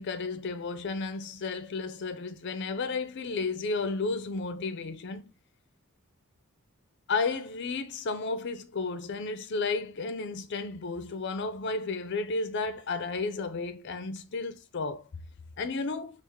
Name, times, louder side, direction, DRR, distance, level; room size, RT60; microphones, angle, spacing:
voice 1, 0.0-5.2 7.1-15.0 15.6-16.1, left 3 dB, 55° left, 0.5 m, -32 dB
4.6 x 2.4 x 3.5 m
head